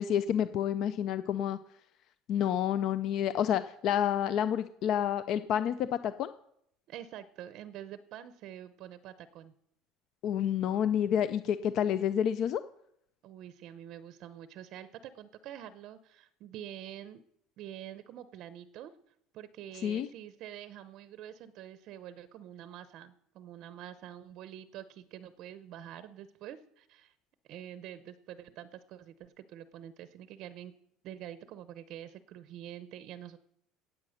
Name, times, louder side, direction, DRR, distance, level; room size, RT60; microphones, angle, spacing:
voice 1, 0.0-1.6 2.3-6.3 10.2-12.6 19.8-20.1, left 9 dB, 40° left, 13 dB, 0.4 m, -29 dB
voice 2, 6.9-9.5 13.2-17.2 17.6-18.9 19.3-27.1 27.5-30.7 31.0-33.4, right 11 dB, 45° right, 13 dB, 0.7 m, -46 dB
17.5 x 8.3 x 6.4 m, 0.74 s
cardioid pair, 180°, 0 cm